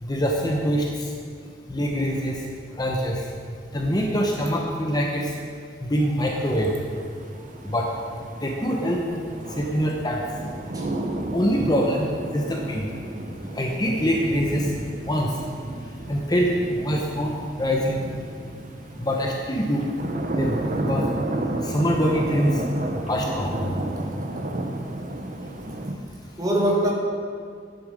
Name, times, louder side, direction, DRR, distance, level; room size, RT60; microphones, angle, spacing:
voice 1, 0.0-0.9 1.7-2.4 2.8-3.2 3.7-5.3 5.8-6.7 7.7-7.9 8.4-9.2 9.6-10.2 11.3-12.9 13.5-14.7 15.0-15.3 16.1-16.5 16.8-17.3 17.6-18.0 19.0-19.8 20.3-20.6 20.8-21.0 21.6-22.6 23.1-23.6, equal, 20° left, 0 dB, 0.9 m, -24 dB
sound 1, 6.4-25.9, right 1 dB, 45° right, 0.8 m, -32 dB
voice 2, 10.7-11.4 26.4-26.9, right 1 dB, 20° right, -2 dB, 1.9 m, -24 dB
11.5 x 9.6 x 5.0 m, 2.2 s
head